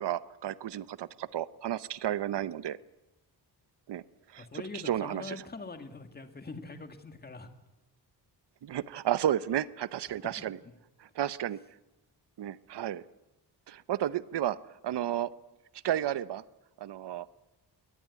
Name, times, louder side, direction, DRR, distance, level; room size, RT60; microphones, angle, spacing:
voice 1, 0.0-2.8 3.9-4.0 4.3-5.4 8.6-10.6 11.0-11.6 12.4-13.0 13.7-14.6 14.8-15.3 15.8-16.4 16.8-17.3, right 11 dB, 80° right, 16 dB, 0.9 m, -32 dB
voice 2, 4.4-7.5, left 3 dB, 25° left, 8 dB, 1.9 m, -43 dB
22.0 x 19.5 x 9.6 m, 0.94 s
wide cardioid pair, 180°, 41 cm